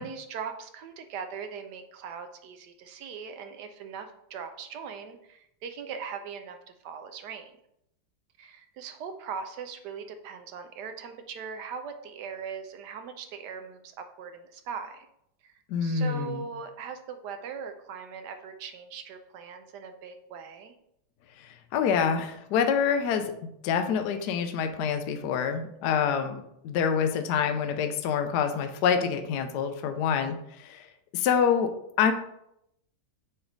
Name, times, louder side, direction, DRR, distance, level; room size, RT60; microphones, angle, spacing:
voice 1, 0.0-6.6 6.8-7.5 8.4-15.1 15.4-15.5 15.8-20.7, right 6 dB, 70° right, 7 dB, 1.0 m, -40 dB
voice 2, 15.7-16.5 21.4-23.3 23.6-30.9 31.1-31.7 32.0-32.1, left 7 dB, 70° left, 7 dB, 1.0 m, -26 dB
8.0 x 3.4 x 3.9 m, 0.77 s
omnidirectional pair, 2.3 m